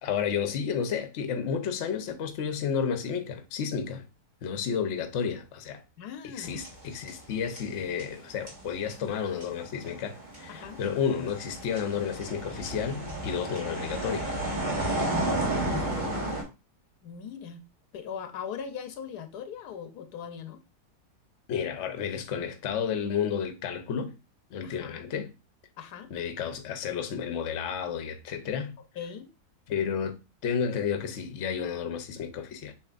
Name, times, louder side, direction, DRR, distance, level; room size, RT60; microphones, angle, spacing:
voice 1, 0.0-4.0 4.4-5.8 6.4-14.3 21.5-24.1 24.5-25.3 26.1-28.8 29.7-30.2 30.4-32.7, left 7 dB, 55° left, 0.9 m, -31 dB
voice 2, 6.0-6.6 10.5-10.8 15.1-15.9 17.0-17.6 17.9-20.6 24.6-25.0 25.8-26.1 29.0-29.3, left 8 dB, 80° left, 1.2 m, -40 dB
sound 1, 6.4-7.3 7.6-16.4, right 2 dB, 30° right, 1.5 m, -33 dB
7.1 x 2.9 x 2.4 m
omnidirectional pair, 1.7 m